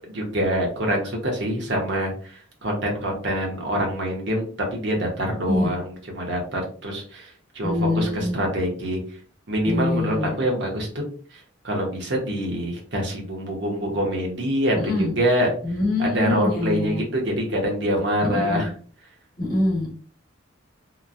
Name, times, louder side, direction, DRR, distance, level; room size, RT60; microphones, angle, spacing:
voice 1, 0.1-9.0 9.5-11.0 11.6-15.5 16.0-18.7, equal, 65° right, 0 dB, 0.9 m, -25 dB
voice 2, 7.6-8.4 9.6-10.3 14.7-15.2 15.6-17.0 18.2-18.7 19.4-19.9, left 2 dB, 45° left, -3 dB, 1.1 m, -24 dB
2.9 x 2.2 x 2.5 m, 0.44 s
head